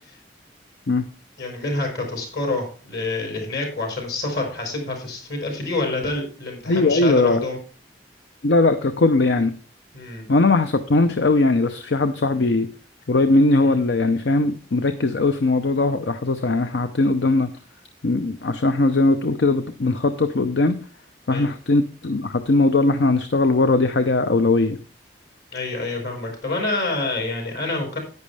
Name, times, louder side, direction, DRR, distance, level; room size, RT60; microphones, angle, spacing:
voice 1, 1.4-7.6 9.9-10.3 13.6-13.8 21.3-21.5 25.5-28.0, left 2 dB, 60° left, 2 dB, 4.7 m, -27 dB
voice 2, 6.7-7.4 8.4-9.5 10.3-12.7 13.1-17.5 18.0-20.8 21.3-24.8, left 2 dB, 75° left, 9 dB, 0.7 m, -19 dB
10.5 x 9.4 x 3.4 m, 0.39 s
head